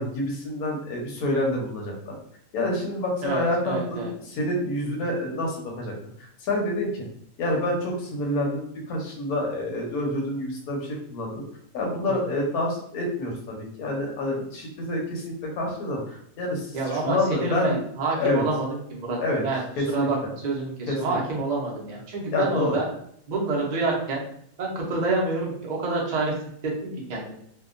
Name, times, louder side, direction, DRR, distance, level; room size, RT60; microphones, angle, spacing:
voice 1, 0.0-2.2 2.5-7.1 7.4-11.4 11.7-17.8 18.1-18.4 19.2-19.4 19.8-20.1 20.9-21.2 22.3-22.7, left 1 dB, 85° left, -1 dB, 1.2 m, -28 dB
voice 2, 3.2-4.1 16.7-22.9 23.3-24.2 24.6-26.3 26.6-27.3, right 3 dB, 50° right, -2 dB, 0.5 m, -28 dB
2.8 x 2.3 x 2.4 m, 0.66 s
omnidirectional pair, 1.6 m